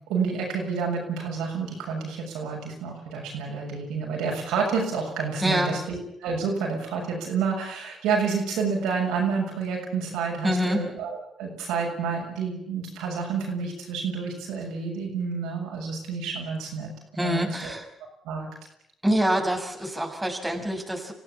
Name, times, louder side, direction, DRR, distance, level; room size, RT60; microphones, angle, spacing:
voice 1, 0.1-16.9 17.2-17.7 18.2-18.5, right 5 dB, 90° right, -1 dB, 7.0 m, -29 dB
voice 2, 5.4-5.8 10.4-10.8 17.2-17.9 19.0-21.1, equal, 10° right, 2 dB, 6.5 m, -25 dB
24.5 x 15.5 x 8.6 m, 0.75 s
supercardioid pair, 60°, 0 cm